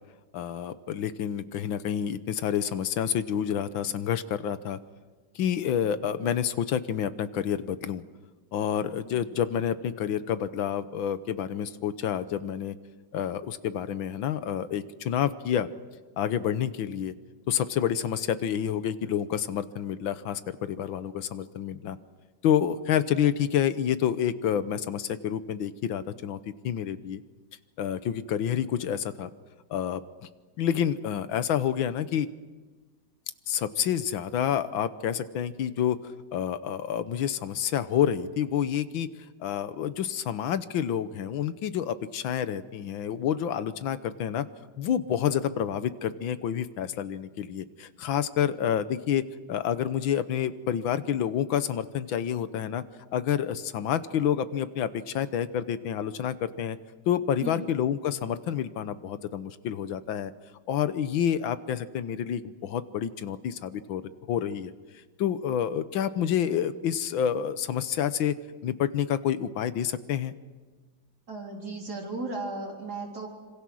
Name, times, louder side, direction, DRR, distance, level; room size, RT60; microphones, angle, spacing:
voice 1, 0.3-4.8 5.4-8.0 8.5-12.8 13.1-15.7 16.2-17.1 17.5-22.0 22.4-27.2 27.8-29.3 29.7-30.0 30.6-32.3 33.5-39.1 39.4-44.5 44.8-49.2 49.5-52.8 53.1-56.8 57.1-60.3 60.7-64.0 64.3-64.7 65.2-68.4 68.6-70.3, left 9 dB, 85° left, 13 dB, 1.7 m, -28 dB
voice 2, 71.3-73.3, right 2 dB, 55° right, 0 dB, 4.5 m, -36 dB
26.5 x 26.0 x 6.3 m, 1.3 s
omnidirectional pair, 2.1 m